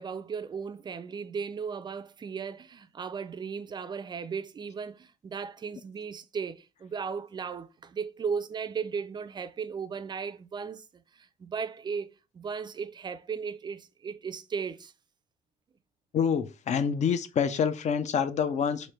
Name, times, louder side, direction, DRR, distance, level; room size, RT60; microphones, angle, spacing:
voice 1, 0.0-10.8 11.1-14.9, right 6 dB, 25° right, 0.4 m, -36 dB
voice 2, 16.1-18.9, left 7 dB, 45° left, 0.5 m, -27 dB
3.3 x 2.5 x 4.3 m
cardioid pair, 110°, 17 cm